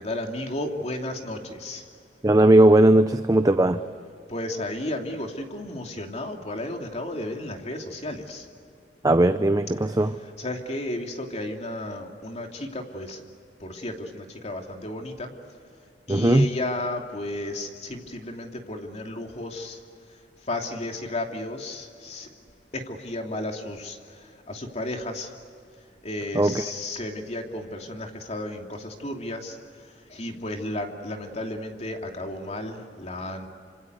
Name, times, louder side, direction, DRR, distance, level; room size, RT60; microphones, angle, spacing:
voice 1, 0.0-1.9 4.3-8.5 10.2-13.2 13.6-15.3 16.1-19.8 20.4-22.3 22.7-25.3 26.0-33.5, left 1 dB, 40° left, 3 dB, 2.9 m, -33 dB
voice 2, 2.2-3.8 9.0-10.1 16.1-16.5 26.3-26.6, right 1 dB, 20° right, 10 dB, 0.7 m, -18 dB
27.5 x 26.5 x 8.1 m, 2.4 s
head